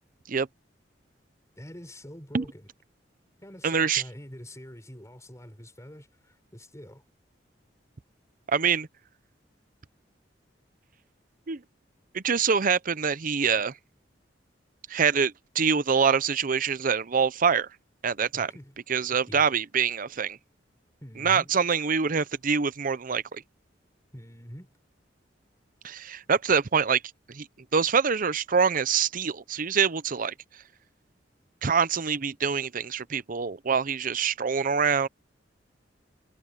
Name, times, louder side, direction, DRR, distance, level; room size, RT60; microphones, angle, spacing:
voice 1, 1.6-2.7 3.4-7.0 18.3-18.8 19.3-19.5 21.0-21.5 24.1-24.8, equal, 15° left, 6.0 m, -45 dB
voice 2, 3.6-4.0 8.5-8.9 11.5-11.6 12.1-13.7 14.9-17.7 18.0-18.5 18.9-20.4 21.2-23.4 25.8-27.0 27.3-27.5 27.7-30.3 31.6-35.1, right 6 dB, 50° right, 0.7 m, -25 dB
head